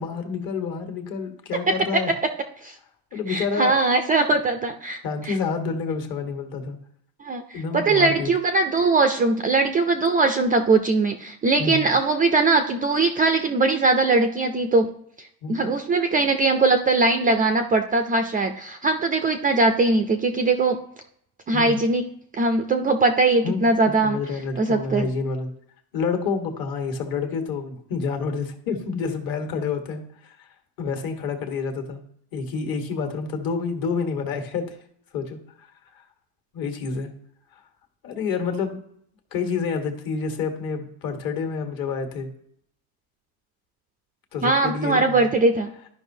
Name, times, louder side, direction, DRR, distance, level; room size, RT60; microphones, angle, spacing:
voice 1, 0.0-2.1 3.1-3.7 5.0-6.8 7.5-8.3 11.6-11.9 15.4-15.6 21.5-21.8 23.4-25.5 25.9-30.5 30.8-32.0 32.3-34.7 35.1-35.4 36.5-37.1 38.0-38.8 39.3-42.3 44.3-45.3, left 5 dB, 55° left, 5 dB, 1.4 m, -28 dB
voice 2, 3.3-5.0 5.3-5.4 7.2-14.9 15.2-20.8 21.5-22.1 22.3-24.2 24.6-25.1 44.4-45.7, right 3 dB, 20° right, 7 dB, 0.3 m, -21 dB
11.5 x 5.3 x 2.7 m, 0.71 s
cardioid pair, 140°, 42 cm